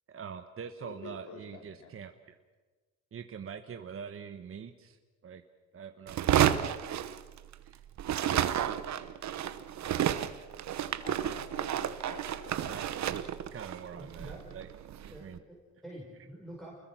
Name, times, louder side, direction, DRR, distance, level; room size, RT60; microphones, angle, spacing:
voice 1, 0.1-2.4 3.1-5.0 5.2-5.4 5.7-6.5 7.6-7.8 12.7-14.7 15.0-15.4, right 7 dB, 45° right, 6 dB, 1.4 m, -44 dB
voice 2, 0.8-1.9 11.0-12.7, left 5 dB, 80° left, 4 dB, 3.7 m, -48 dB
sound 1, 6.1-7.7 8.0-15.2, right 10 dB, 65° right, 1.2 m, -31 dB
voice 3, 13.9-14.6 15.1-16.8, right 1 dB, ahead, -3 dB, 5.4 m, -47 dB
29.0 x 21.0 x 6.2 m, 1.3 s
cardioid pair, 90°, 30 cm